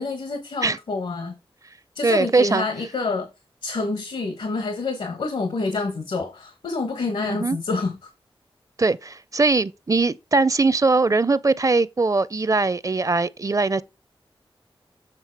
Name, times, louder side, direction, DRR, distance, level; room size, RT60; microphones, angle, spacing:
voice 1, 0.0-1.4 1.9-3.3 3.6-8.1, left 3 dB, 85° left, 1.3 m, -27 dB
voice 2, 2.0-2.7 7.2-7.6 8.8-13.8, right 3 dB, 35° right, 0.5 m, -21 dB
7.5 x 3.9 x 4.7 m
cardioid pair, 50°, 9 cm